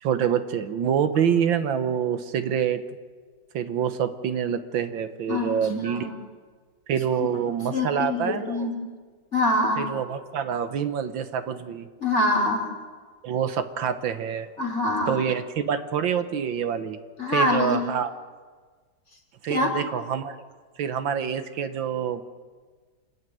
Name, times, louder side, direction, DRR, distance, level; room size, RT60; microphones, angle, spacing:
voice 1, 0.0-2.8 3.5-6.1 6.9-8.7 9.8-11.9 13.2-14.5 15.1-17.0 17.3-18.1 19.4-20.4 20.8-22.2, right 8 dB, 80° right, 9 dB, 1.8 m, -26 dB
voice 2, 5.3-6.1 7.7-8.7 9.3-9.9 12.0-12.7 14.6-15.2 17.2-17.8 19.5-19.7, left 2 dB, 35° left, 2 dB, 3.9 m, -24 dB
28.0 x 11.0 x 9.2 m, 1.5 s
omnidirectional pair, 2.1 m